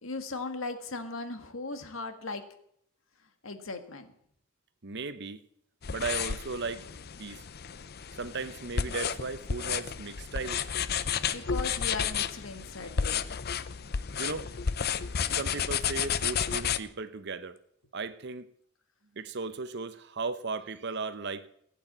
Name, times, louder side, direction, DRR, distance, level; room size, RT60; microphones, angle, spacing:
voice 1, 0.0-2.4 3.4-4.1 11.3-13.2, left 3 dB, 90° left, 7 dB, 1.8 m, -38 dB
voice 2, 4.8-5.4 5.9-6.8 7.2-7.4 8.2-10.7 14.2-14.5 15.3-17.6 17.9-18.5 19.1-21.5, right 4 dB, 60° right, 12 dB, 0.9 m, -36 dB
sound 1, 5.8-16.8, left 7 dB, 55° left, 0.6 m, -32 dB
16.0 x 8.6 x 7.4 m, 0.70 s
head